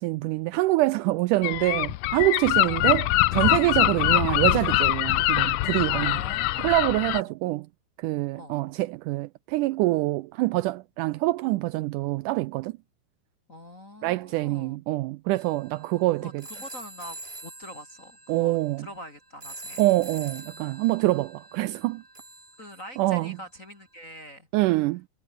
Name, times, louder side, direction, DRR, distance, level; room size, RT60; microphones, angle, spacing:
voice 1, 0.0-6.2 6.6-7.7 8.0-12.7 14.0-16.4 18.3-18.9 19.8-22.0 23.0-23.4 24.5-25.0, right 19 dB, 85° right, 1.8 m, -25 dB
Gull seagull, 1.4-7.2, left 17 dB, 85° left, 1.6 m, -23 dB
voice 2, 5.9-6.7 7.1-7.3 8.4-8.5 13.5-14.8 16.1-19.8 22.6-24.5 24.7-24.8, equal, 25° left, 2.8 m, -44 dB
sound 1, 15.3-23.4, right 2 dB, 15° right, 4.1 m, -45 dB
omnidirectional pair, 4.1 m